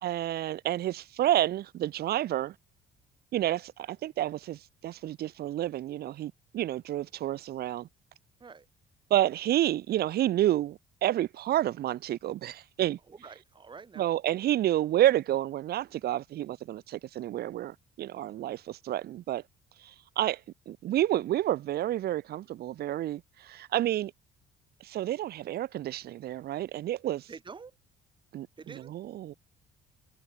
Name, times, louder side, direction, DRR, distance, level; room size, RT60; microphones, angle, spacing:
voice 1, 0.0-2.5 3.3-7.9 9.1-13.0 14.0-19.4 19.8-20.4 20.7-24.1 24.8-27.3 28.3-29.3, right 13 dB, 70° right, 5.2 m, -29 dB
voice 2, 13.1-14.1 27.3-27.7 28.6-28.9, right 5 dB, 30° right, 5.0 m, -47 dB
cardioid pair, 110°, 17 cm